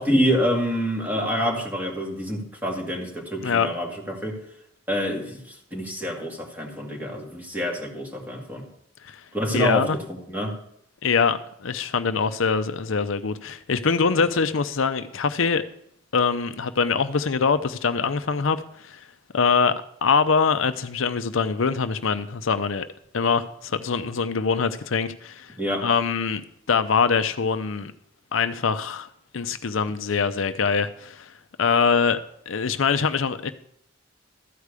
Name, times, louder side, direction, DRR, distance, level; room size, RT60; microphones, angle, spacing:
voice 1, 0.0-4.4 4.9-8.6 9.3-10.5 25.6-25.8, equal, 10° right, 2.2 m, -27 dB
voice 2, 9.5-10.0 11.0-15.6 16.1-19.0 19.3-19.8 20.0-22.9 23.1-25.5 25.8-26.4 26.7-27.9 28.3-29.1 29.3-31.3 31.6-32.2 32.5-33.5, left 5 dB, 75° left, 0.6 m, -23 dB
13.5 x 4.9 x 8.2 m
head